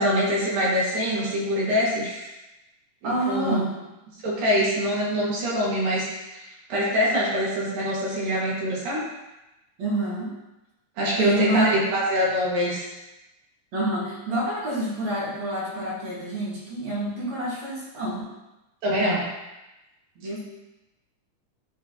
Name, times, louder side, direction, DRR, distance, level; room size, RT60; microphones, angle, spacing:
voice 1, 0.0-2.3 3.0-3.7 4.2-9.0 11.0-12.9 18.8-19.2, equal, 85° right, -6 dB, 3.5 m, -24 dB
voice 2, 3.0-3.7 9.8-10.3 11.2-11.7 13.7-18.3 20.2-20.4, right 1 dB, 60° right, -6 dB, 2.8 m, -27 dB
11.0 x 3.8 x 2.9 m, 1.0 s
omnidirectional pair, 3.9 m